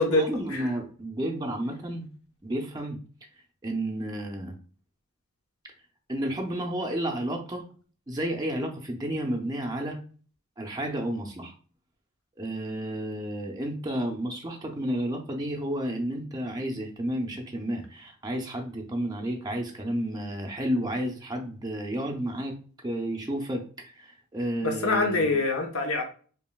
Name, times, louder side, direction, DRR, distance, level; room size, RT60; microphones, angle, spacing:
voice 1, 0.1-2.1 2.4-3.0 3.6-4.5 6.1-7.6 8.1-10.0 10.6-11.5 12.4-22.5 22.8-25.3, right 1 dB, 15° right, 2 dB, 0.5 m, -31 dB
voice 2, 24.6-26.0, left 2 dB, 90° left, 2 dB, 1.0 m, -24 dB
5.2 x 2.6 x 2.3 m, 0.41 s
head